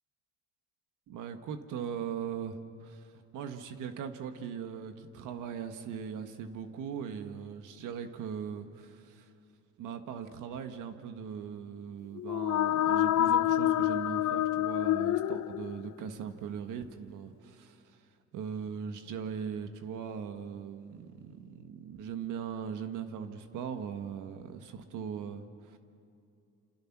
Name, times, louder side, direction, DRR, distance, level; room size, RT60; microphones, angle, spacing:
voice 1, 1.1-9.3 9.8-18.0 18.3-25.8, right 7 dB, 90° right, 7 dB, 1.6 m, -40 dB
sound 1, 12.2-16.0, left 12 dB, 65° left, 0.7 m, -28 dB
28.5 x 26.5 x 6.1 m, 2.6 s
cardioid pair, 90°, 30 cm